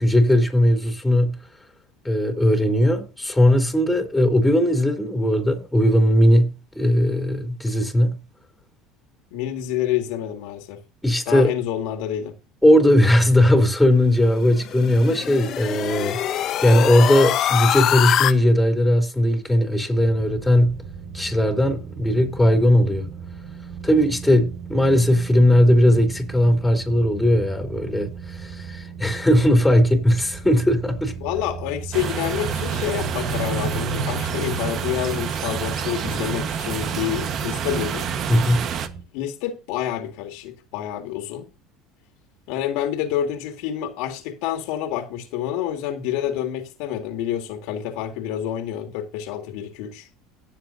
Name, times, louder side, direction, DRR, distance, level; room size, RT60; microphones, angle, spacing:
voice 1, 0.0-1.4 2.0-8.2 11.0-11.5 12.6-20.8 21.1-23.1 23.8-31.1 38.3-38.7, left 1 dB, 5° left, 3.4 m, -18 dB
voice 2, 9.3-10.8 11.3-12.3 31.2-38.1 39.1-41.5 42.5-50.1, left 11 dB, 75° left, 2.1 m, -28 dB
sound 1, 14.4-18.3, left 11 dB, 50° left, 1.1 m, -24 dB
sound 2, 19.9-39.0, right 6 dB, 80° right, 5.8 m, -36 dB
sound 3, 31.9-38.9, right 7 dB, 50° right, 1.3 m, -28 dB
18.0 x 7.3 x 2.7 m
supercardioid pair, 105°, 0 cm